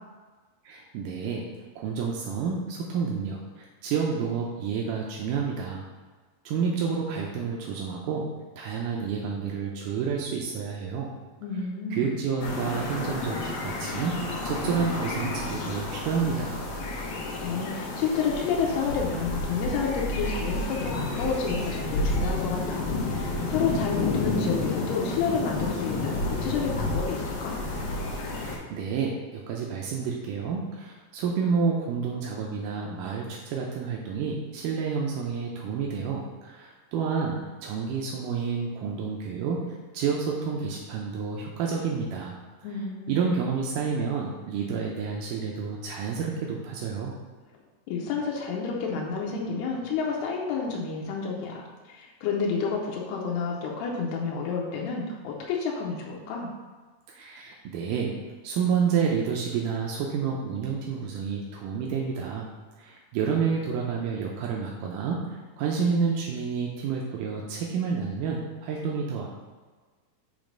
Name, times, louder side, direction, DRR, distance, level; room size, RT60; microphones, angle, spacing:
voice 1, 0.7-1.5 1.8-5.8 6.5-8.3 8.6-11.1 11.9-14.2 14.4-16.6 28.4-39.6 39.9-42.4 43.1-47.1 57.1-58.2 58.4-62.5 62.8-69.3, right 6 dB, 85° right, -2 dB, 1.9 m, -29 dB
voice 2, 11.4-12.1 17.0-27.6 42.6-43.4 47.9-56.5, left 5 dB, 90° left, -2 dB, 2.8 m, -30 dB
sound 1, 12.4-28.6, left 2 dB, 70° left, 2.5 m, -30 dB
7.1 x 3.3 x 5.1 m, 1.4 s
omnidirectional pair, 4.4 m